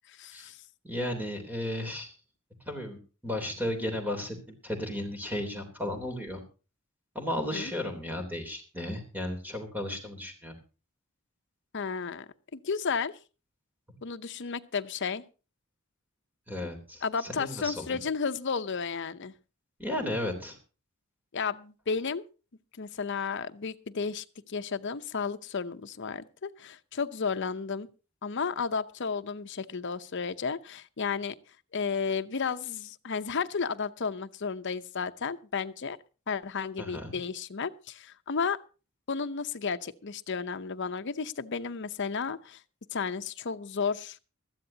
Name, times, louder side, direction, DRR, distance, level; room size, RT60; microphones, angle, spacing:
voice 1, 0.1-0.6 7.5-7.7 11.7-13.2 14.0-15.2 17.0-19.3 21.3-22.2 22.8-27.9 28.2-31.4 31.7-36.0 36.3-38.6 39.1-42.6 42.9-44.2, left 5 dB, 60° left, 10 dB, 0.7 m, -33 dB
voice 2, 0.8-2.1 2.6-3.0 3.2-6.4 7.1-10.6 16.5-18.0 19.8-20.6 36.8-37.1, left 1 dB, 10° right, 4 dB, 3.3 m, -34 dB
20.0 x 14.0 x 2.8 m, 0.33 s
head